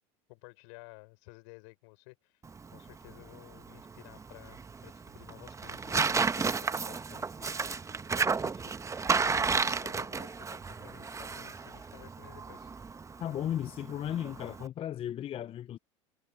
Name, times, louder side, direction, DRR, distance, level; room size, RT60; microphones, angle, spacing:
voice 1, 0.3-7.5 7.9-12.7, left 29 dB, 70° left, 5.8 m, -54 dB
Tearing, 2.4-14.7, right 5 dB, 20° right, 1.1 m, -33 dB
voice 2, 13.2-15.8, left 10 dB, 35° left, 0.6 m, -35 dB
hypercardioid pair, 85°, 17 cm